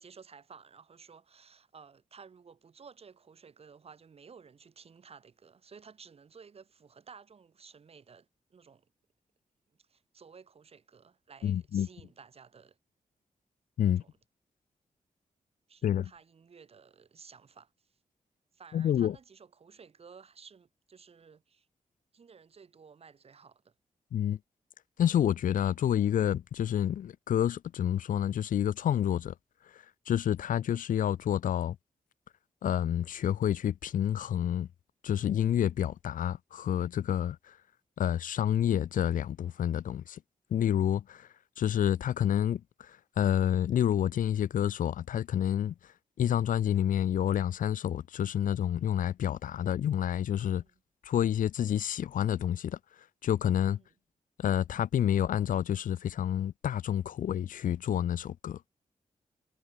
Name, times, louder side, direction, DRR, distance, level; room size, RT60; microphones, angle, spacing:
voice 1, 0.0-8.9 9.7-12.8 13.8-14.2 15.7-18.0 18.5-21.7 22.1-23.7 50.5-50.8 53.7-54.0, right 6 dB, 45° right, 6.9 m, -55 dB
voice 2, 11.4-11.9 13.8-14.0 15.8-16.1 18.7-19.2 24.1-24.4 25.0-29.3 30.1-31.8 32.6-34.7 35.0-37.4 38.0-40.2 40.5-41.3 41.6-42.6 43.2-45.7 46.2-50.6 51.1-52.8 53.2-53.8 54.4-58.6, left 10 dB, 70° left, 0.5 m, -28 dB
wide cardioid pair, 180°, 14 cm